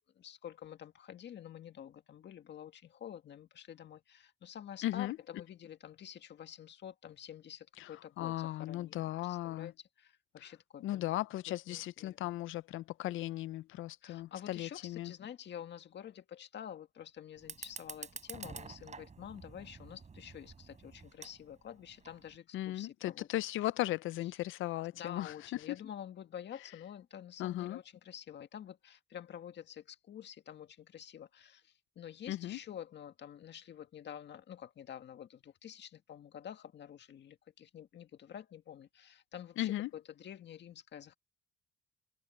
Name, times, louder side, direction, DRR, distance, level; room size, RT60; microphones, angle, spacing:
voice 1, 0.2-11.1 11.4-12.4 14.0-23.3 24.9-41.1, left 9 dB, 60° left, 1.9 m, -49 dB
voice 2, 4.8-5.2 7.8-7.9 8.2-9.7 10.8-15.1 22.5-25.3 27.4-27.8 32.3-32.6 39.6-39.9, left 15 dB, 80° left, 0.6 m, -37 dB
Fire, 17.4-22.4, right 5 dB, 35° right, 6.3 m, -49 dB
cardioid pair, 90°, 20 cm